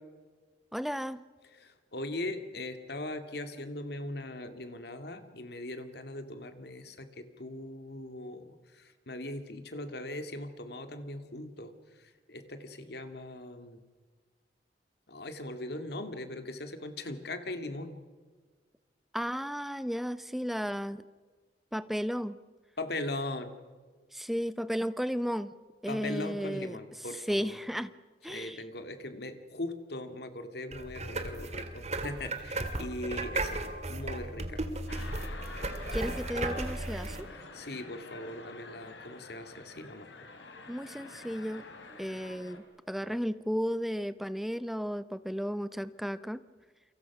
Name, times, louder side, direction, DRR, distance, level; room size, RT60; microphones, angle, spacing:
voice 1, 0.7-1.2 19.1-21.0 21.7-22.4 24.1-25.5 25.8-26.8 27.3-27.9 28.2-28.6 35.9-37.3 40.7-41.6 42.0-46.4, equal, ahead, 13 dB, 0.7 m, -34 dB
voice 2, 1.5-13.8 15.1-18.0 22.8-23.5 25.9-27.6 28.3-34.6 37.3-40.1, left 2 dB, 60° left, 8 dB, 2.2 m, -40 dB
sound 1, 30.7-37.2, right 2 dB, 35° right, 2.1 m, -35 dB
sound 2, 34.9-42.6, left 3 dB, 80° left, 3.7 m, -47 dB
29.0 x 24.5 x 6.1 m, 1.5 s
head